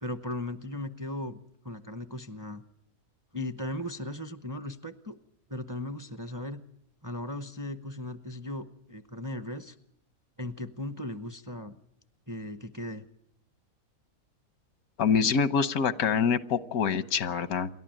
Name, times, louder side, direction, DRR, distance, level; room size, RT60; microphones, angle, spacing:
voice 1, 0.0-1.4 1.6-2.6 3.3-5.2 5.5-6.6 7.0-9.7 10.4-11.8 12.3-13.0, left 1 dB, 20° right, 11 dB, 0.7 m, -37 dB
voice 2, 15.0-17.7, left 6 dB, 90° left, 14 dB, 1.5 m, -25 dB
28.0 x 12.0 x 9.1 m, 0.73 s
omnidirectional pair, 1.5 m